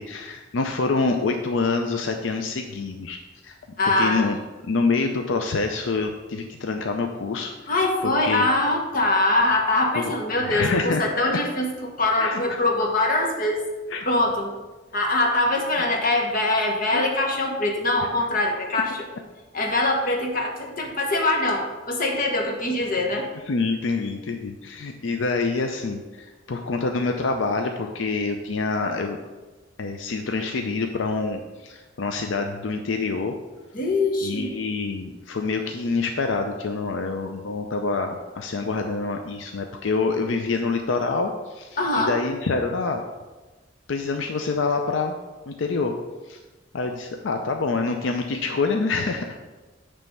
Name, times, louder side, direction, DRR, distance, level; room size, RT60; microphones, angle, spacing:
voice 1, 0.0-4.4 4.6-7.5 8.0-8.5 9.9-10.1 10.4-11.0 11.3-11.4 12.2-12.6 13.9-14.0 16.9-17.0 23.5-29.2 29.8-33.3 34.2-43.0 43.9-45.1 45.5-46.0 46.2-46.4 46.7-49.4, left 4 dB, 85° left, 4 dB, 0.5 m, -26 dB
voice 2, 3.8-4.3 7.7-13.7 14.0-14.5 14.9-19.0 19.5-23.3 33.7-34.5 41.8-42.2, left 2 dB, 50° left, 1 dB, 1.2 m, -23 dB
9.1 x 3.4 x 5.4 m, 1.2 s
head